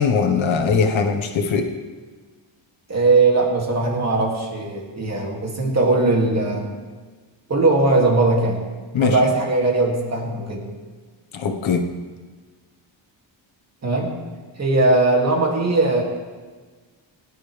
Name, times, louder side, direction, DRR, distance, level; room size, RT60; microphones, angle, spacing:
voice 1, 0.0-1.7 8.9-9.2 11.3-11.9, left 5 dB, 75° left, 4 dB, 1.4 m, -20 dB
voice 2, 2.9-6.7 7.5-8.6 9.0-10.8 13.8-14.1 14.6-16.0, right 2 dB, 35° right, 0 dB, 2.6 m, -19 dB
17.5 x 11.0 x 3.4 m, 1.4 s
cardioid pair, 110°, 47 cm